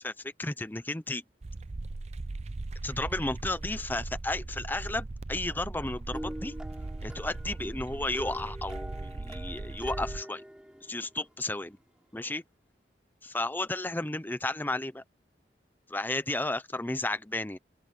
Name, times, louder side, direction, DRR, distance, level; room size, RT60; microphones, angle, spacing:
voice 1, 0.0-1.2 2.8-6.5 7.0-10.4 10.9-11.8 12.1-12.4 13.2-15.0 15.9-17.6, left 2 dB, 10° left, 0.7 m, -33 dB
sound 1, 1.4-10.2, right 2 dB, 40° right, 0.5 m, -39 dB
sound 2, 6.1-11.6, equal, 5° right, 7.2 m, -44 dB
open air
head